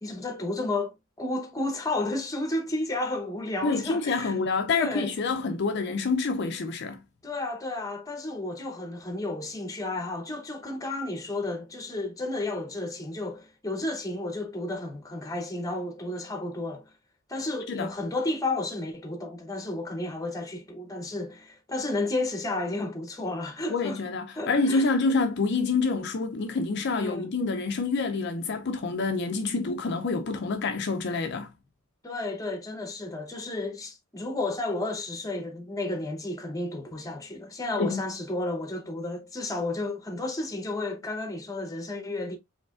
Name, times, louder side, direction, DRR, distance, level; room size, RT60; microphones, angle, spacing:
voice 1, 0.0-4.4 4.7-5.1 7.2-16.9 17.3-24.0 24.4-24.9 26.9-27.3 32.0-42.4, left 2 dB, 15° left, 0.9 m, -32 dB
voice 2, 3.6-7.0 17.7-17.9 23.7-31.5 37.8-38.0, left 3 dB, 55° left, 0.5 m, -27 dB
4.8 x 3.2 x 2.4 m
head